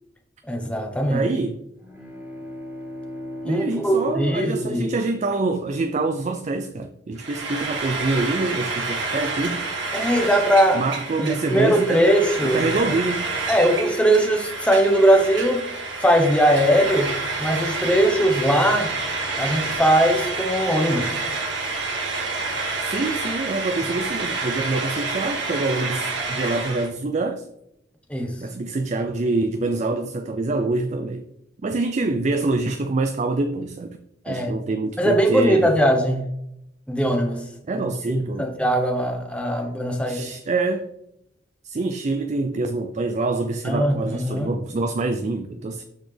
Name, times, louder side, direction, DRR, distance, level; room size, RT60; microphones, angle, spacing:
voice 1, 0.5-1.2 3.4-4.9 9.9-10.8 11.2-12.8 13.5-15.6 16.0-18.9 19.4-21.1 28.1-28.3 34.2-34.6 35.0-36.3 36.9-37.4 37.7-40.2 43.6-44.5, right 1 dB, 5° left, 1.1 m, -20 dB
voice 2, 1.1-1.6 3.4-9.6 10.7-12.1 12.4-13.3 22.8-27.5 28.4-31.3 31.6-34.0 34.3-35.7 37.7-38.5 40.1-40.9 41.6-45.8, right 3 dB, 40° right, 0.4 m, -25 dB
sound 1, 1.7-5.8, left 1 dB, 10° right, 1.9 m, -38 dB
Frying (food), 7.2-26.9, right 3 dB, 80° right, 1.8 m, -28 dB
12.5 x 4.2 x 3.4 m
head